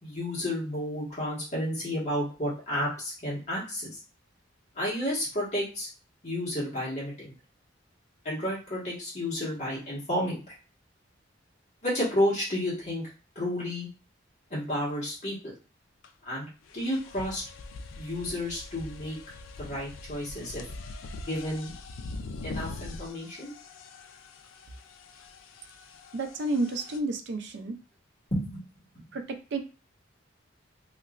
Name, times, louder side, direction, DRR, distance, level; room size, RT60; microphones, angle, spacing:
voice 1, 0.0-4.0 4.7-5.9 6.2-7.3 8.2-10.4 11.8-13.0 13.3-13.9 14.5-15.5 16.2-16.5 16.7-17.4 18.0-19.2 19.6-20.6 21.2-21.7 22.4-23.5 28.3-28.6, left 1 dB, 35° left, -6 dB, 1.5 m, -31 dB
sound 1, 16.0-16.1 16.7-27.0, left 3 dB, 80° left, 0.4 m, -43 dB
voice 2, 26.1-27.8 29.1-29.6, right 2 dB, 60° right, 6 dB, 0.4 m, -31 dB
3.2 x 2.9 x 2.4 m, 0.34 s
head